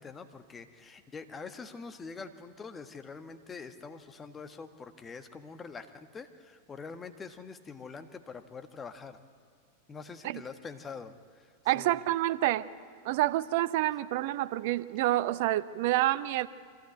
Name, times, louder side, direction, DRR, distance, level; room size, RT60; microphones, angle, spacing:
voice 1, 0.0-5.9 6.1-9.2 9.9-12.0, left 5 dB, 20° left, 8 dB, 1.4 m, -45 dB
voice 2, 11.7-12.6 13.0-16.5, right 15 dB, 50° right, 17 dB, 0.7 m, -28 dB
24.0 x 15.5 x 8.1 m, 2.2 s
figure-of-eight pair, 90°, 0 cm